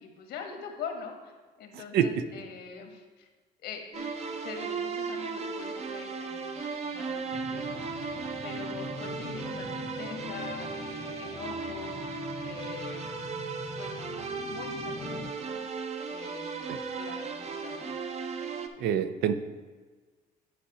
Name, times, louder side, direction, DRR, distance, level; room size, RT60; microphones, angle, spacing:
voice 1, 0.0-1.3 1.6-3.3 3.6-4.1 4.4-6.5 6.8-7.9 8.4-12.0 12.4-13.4 13.8-14.0 14.4-15.6 16.1-16.7 16.9-17.9, left 6 dB, 75° left, 3 dB, 1.3 m, -43 dB
sound 1, 3.9-18.7, right 5 dB, 40° right, 0.7 m, -36 dB
sound 2, 7.3-15.3, left 6 dB, 25° left, 0.4 m, -44 dB
voice 2, 18.8-19.4, right 9 dB, 80° right, 11 dB, 0.5 m, -25 dB
9.8 x 4.9 x 4.2 m, 1.4 s
cardioid pair, 110°, 17 cm